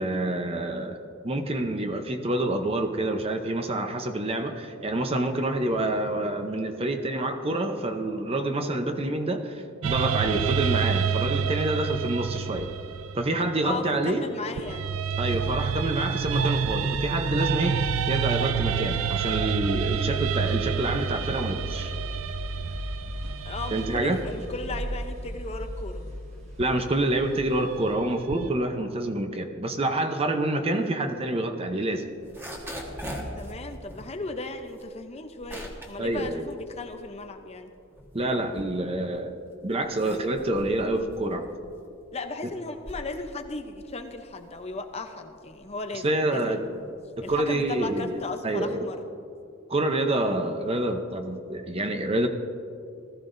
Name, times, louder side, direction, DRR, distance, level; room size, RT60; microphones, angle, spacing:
voice 1, 0.0-12.7 13.1-14.3 15.2-21.9 23.7-24.2 26.6-32.1 36.0-36.5 38.1-41.5 46.0-46.6 47.2-48.9 49.7-52.3, right 1 dB, 30° right, 6 dB, 0.7 m, -27 dB
sound 1, 9.8-14.0 14.6-24.6 26.6-28.5, right 7 dB, 90° right, 0.4 m, -29 dB
voice 2, 13.6-14.9 23.4-26.1 33.4-37.7 42.1-46.8 47.2-49.0, left 3 dB, 30° left, 6 dB, 0.7 m, -36 dB
sound 2, 15.3-27.9, equal, 70° right, 2.1 m, -37 dB
sound 3, 32.1-37.4 37.8-39.2 39.7-48.4, equal, 10° right, 1.4 m, -42 dB
19.0 x 14.0 x 2.6 m, 2.5 s
head